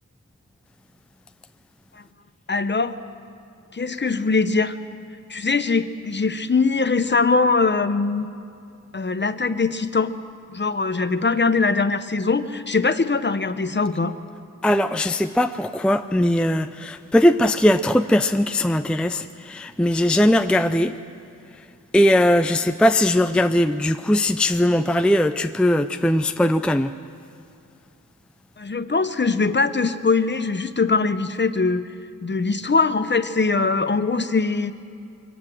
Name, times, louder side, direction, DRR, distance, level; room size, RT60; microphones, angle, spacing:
voice 1, 2.5-3.0 3.7-4.8 5.3-8.3 8.9-10.1 10.5-14.1 28.6-31.9 32.2-34.7, left 4 dB, 35° left, 11 dB, 0.9 m, -22 dB
voice 2, 14.6-20.9 21.9-26.9, left 1 dB, 5° left, 8 dB, 0.5 m, -19 dB
24.0 x 17.5 x 7.6 m, 2.5 s
wide cardioid pair, 110°, 32 cm